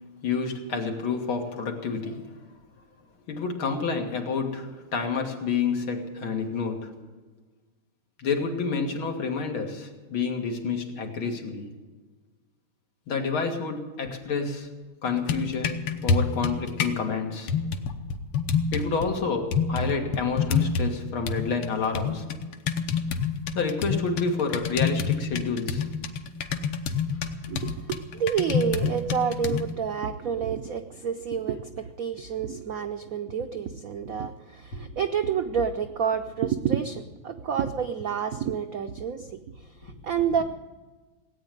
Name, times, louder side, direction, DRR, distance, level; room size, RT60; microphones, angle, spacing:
voice 1, 0.2-2.4 3.3-6.9 8.2-11.7 13.1-14.7 15.0-17.5 18.7-22.3 23.5-25.9 34.7-34.8 39.8-39.9, left 5 dB, 70° left, 3 dB, 2.7 m, -29 dB
sound 1, 15.1-17.0 17.5-19.1 19.5-21.0 21.3-29.7, left 5 dB, 90° left, 1.9 m, -28 dB
voice 2, 27.5-39.4 39.8-40.4, right 7 dB, 90° right, 8 dB, 0.7 m, -29 dB
17.5 x 8.9 x 9.1 m, 1.3 s
omnidirectional pair, 2.4 m